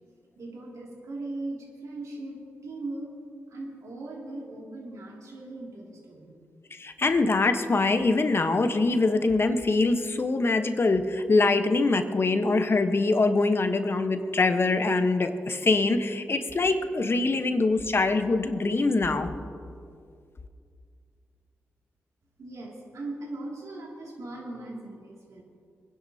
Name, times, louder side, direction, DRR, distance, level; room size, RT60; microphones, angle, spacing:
voice 1, 0.4-3.1 3.5-6.4 22.4-25.4, right 2 dB, 70° right, -2 dB, 2.6 m, -39 dB
voice 2, 6.7-19.3, left 3 dB, 45° left, 7 dB, 1.1 m, -24 dB
23.0 x 10.5 x 2.9 m, 2.3 s
supercardioid pair, 50°, 6 cm